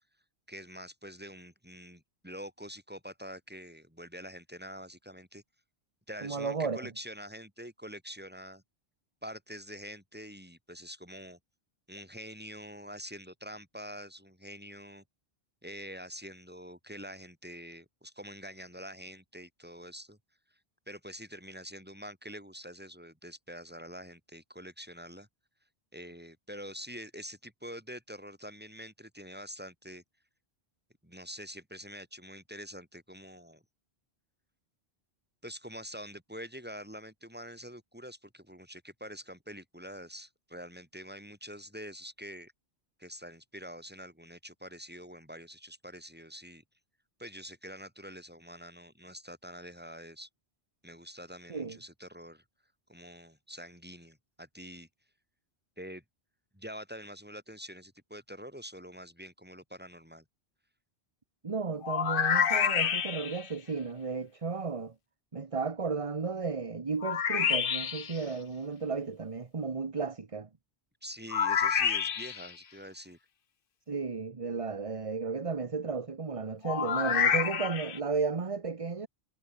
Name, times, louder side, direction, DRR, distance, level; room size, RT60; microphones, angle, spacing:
voice 1, 0.5-5.4 6.1-8.6 9.2-11.4 11.9-15.0 15.6-20.2 20.9-25.3 25.9-30.0 31.0-33.6 35.4-42.5 43.0-46.6 47.2-50.3 50.8-52.4 52.9-54.9 55.8-56.0 56.5-60.2 71.0-73.2, equal, 10° right, 7.1 m, -46 dB
voice 2, 6.2-6.9 51.5-51.8 61.4-64.9 65.3-70.5 73.9-79.1, right 4 dB, 35° right, 1.1 m, -34 dB
sound 1, 61.8-63.5 67.0-68.2 71.3-72.5 76.6-78.0, left 7 dB, 60° left, 1.1 m, -28 dB
omnidirectional pair, 1.1 m